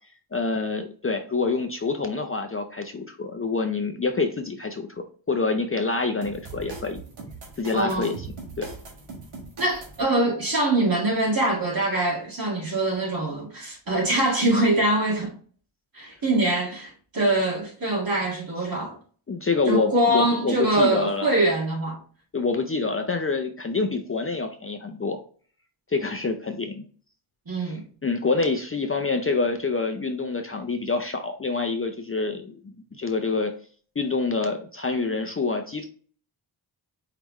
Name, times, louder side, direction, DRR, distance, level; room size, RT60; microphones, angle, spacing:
voice 1, 0.3-7.0 7.6-8.3 8.6-8.7 19.3-21.3 22.3-25.2 25.9-26.8 27.6-33.5 34.0-35.9, left 4 dB, 30° left, 0.6 m, -27 dB
sound 1, 6.2-10.0, right 3 dB, 85° right, 1.6 m, -40 dB
voice 2, 7.7-8.1 9.6-15.3 15.9-19.0 19.7-22.0 27.5-27.8, right 1 dB, 45° right, 2.1 m, -23 dB
4.8 x 3.4 x 3.1 m
cardioid pair, 65°, 48 cm